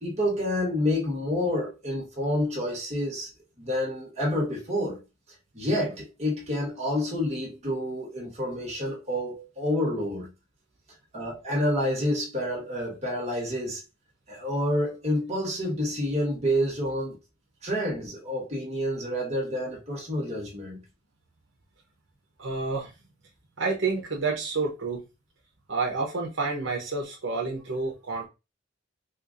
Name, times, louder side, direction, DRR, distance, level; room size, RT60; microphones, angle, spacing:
voice 1, 0.0-3.3 3.6-5.0 5.5-10.3 11.1-13.8 14.3-17.2 17.6-20.8, left 1 dB, 35° right, 1.5 m, -28 dB
voice 2, 22.4-22.9 23.6-25.0 25.7-28.3, right 4 dB, 75° right, 1.0 m, -29 dB
4.3 x 2.5 x 2.6 m
head